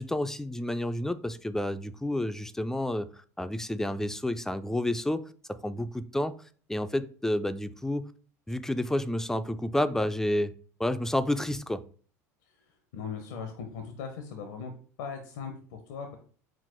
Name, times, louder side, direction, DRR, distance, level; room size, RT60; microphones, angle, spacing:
voice 1, 0.0-3.1 3.4-5.2 5.5-6.3 6.7-8.0 8.5-10.5 10.8-11.8, left 1 dB, 5° left, 11 dB, 0.3 m, -30 dB
voice 2, 12.9-14.7 15.0-16.2, left 6 dB, 70° left, 5 dB, 0.6 m, -39 dB
4.4 x 2.0 x 4.3 m, 0.44 s
hypercardioid pair, 80°, 9 cm